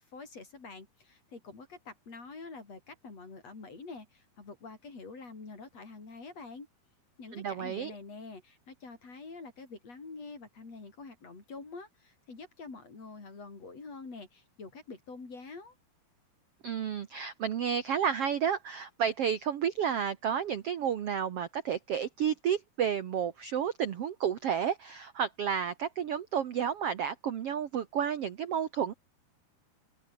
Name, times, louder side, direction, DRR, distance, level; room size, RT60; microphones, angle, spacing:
voice 1, 0.1-6.7 7.2-15.7, left 4 dB, 40° left, 6.4 m, -46 dB
voice 2, 7.3-7.9 16.6-28.9, right 8 dB, 70° right, 1.4 m, -31 dB
open air
omnidirectional pair, 4.6 m